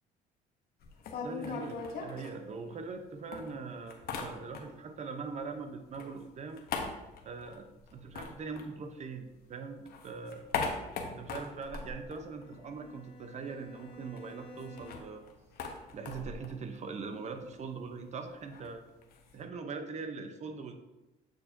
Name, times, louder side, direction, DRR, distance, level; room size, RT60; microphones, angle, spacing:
sound 1, 0.8-3.0 3.3-4.9 5.2-9.4 9.7-13.0 13.3-13.4 13.6-19.4, left 5 dB, 65° left, 0.9 m, -41 dB
voice 1, 1.2-6.6 7.2-7.6 7.9-10.4 11.0-15.2 15.9-18.8 19.3-20.7, right 4 dB, 40° right, 7 dB, 0.8 m, -41 dB
Bowed string instrument, 12.2-15.3, left 1 dB, 30° left, 1.0 m, -53 dB
7.9 x 4.5 x 2.7 m, 1.0 s
cardioid pair, 110°, 17 cm